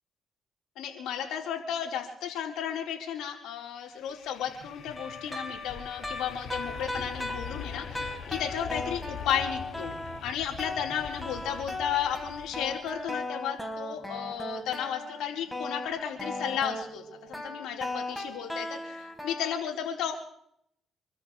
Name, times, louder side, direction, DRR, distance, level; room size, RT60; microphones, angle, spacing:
voice 1, 0.8-9.9 10.2-20.1, left 9 dB, 90° left, 1 dB, 4.4 m, -34 dB
sound 1, 3.9-13.0, left 7 dB, 70° left, 2.2 m, -43 dB
sound 2, 4.7-10.3 10.6-19.6, left 2 dB, 5° left, 4.2 m, -37 dB
28.0 x 13.5 x 3.3 m, 0.70 s
cardioid pair, 90°, 0 cm